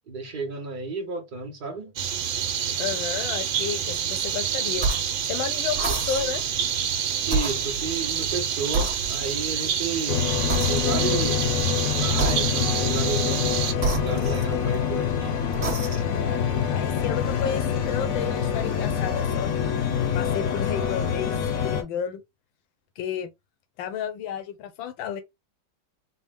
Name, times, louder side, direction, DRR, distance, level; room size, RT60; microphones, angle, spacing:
voice 1, 0.1-1.9 7.3-10.2 10.7-15.5, right 4 dB, 65° right, 0.5 m, -32 dB
sound 1, 2.0-13.7, right 8 dB, 85° right, 1.5 m, -28 dB
voice 2, 2.8-4.9 5.3-6.4 16.7-19.5 20.1-21.3 21.6-22.2 23.0-23.3 23.8-25.2, left 8 dB, 80° left, 1.5 m, -31 dB
sound 2, 4.8-5.2 5.7-6.5 7.2-8.4 8.7-9.5 10.5-11.2 12.1-12.8 13.8-14.9 15.5-16.2, right 3 dB, 45° right, 1.4 m, -30 dB
sound 3, 10.1-21.8, left 8 dB, 60° left, 0.9 m, -25 dB
4.3 x 2.1 x 3.5 m
omnidirectional pair, 2.1 m